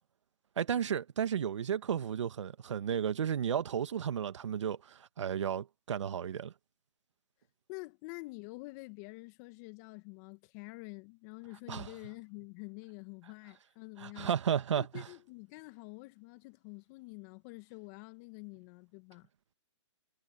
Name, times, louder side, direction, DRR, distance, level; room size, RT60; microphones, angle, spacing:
voice 1, 0.6-6.5 11.7-11.9 14.0-15.1, right 8 dB, 70° right, 1.8 m, -33 dB
voice 2, 7.7-14.4 14.7-19.3, left 27 dB, 35° left, 1.9 m, -47 dB
hypercardioid pair, 140°, 16 cm